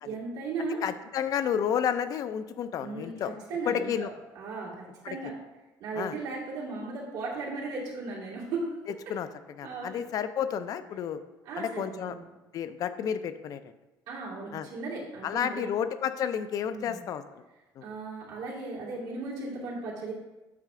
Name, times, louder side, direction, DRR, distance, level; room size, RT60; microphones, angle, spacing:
voice 1, 0.0-0.8 2.8-4.1 4.3-5.3 5.8-8.7 9.6-10.0 11.4-12.2 14.1-15.7 16.7-17.0 17.8-20.1, right 3 dB, 85° right, -8 dB, 2.7 m, -36 dB
voice 2, 0.8-3.3 3.7-4.1 5.0-5.2 6.0-6.2 9.1-9.3 9.6-11.2 11.6-12.2 12.5-13.6 14.5-14.7 15.2-17.2 17.8-17.9, left 8 dB, 50° left, 12 dB, 0.5 m, -31 dB
8.3 x 5.5 x 3.7 m, 1.1 s
cardioid pair, 135°, 8 cm